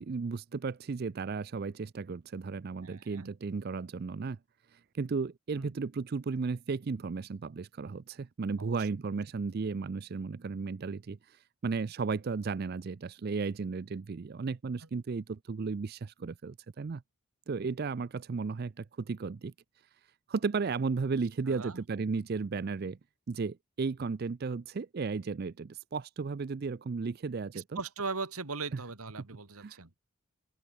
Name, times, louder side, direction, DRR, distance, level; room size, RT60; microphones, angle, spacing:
voice 1, 0.0-4.4 4.7-17.0 17.5-19.5 20.3-23.0 23.3-27.8 28.7-28.8 29.6-30.0, right 4 dB, 45° right, 0.4 m, -34 dB
voice 2, 2.8-3.3 5.6-5.7 8.6-8.9 21.5-21.8 27.5-29.9, right 4 dB, 85° right, 2.2 m, -39 dB
open air
head